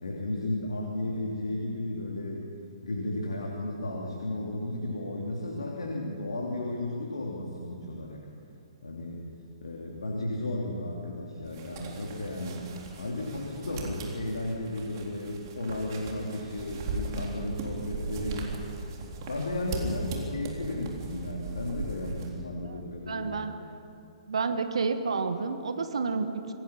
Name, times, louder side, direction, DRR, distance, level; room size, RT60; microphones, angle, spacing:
voice 1, 0.0-2.5 2.8-8.3 8.8-9.2 9.6-12.7 13.0-18.5 19.3-23.4, left 1 dB, 70° left, -1 dB, 3.0 m, -34 dB
sound 1, 11.5-22.3, right 3 dB, 40° right, 3.9 m, -38 dB
voice 2, 23.1-23.5 24.3-26.5, right 4 dB, 65° right, 8 dB, 1.4 m, -30 dB
27.0 x 19.0 x 5.8 m, 2.8 s
figure-of-eight pair, 120°, 3 cm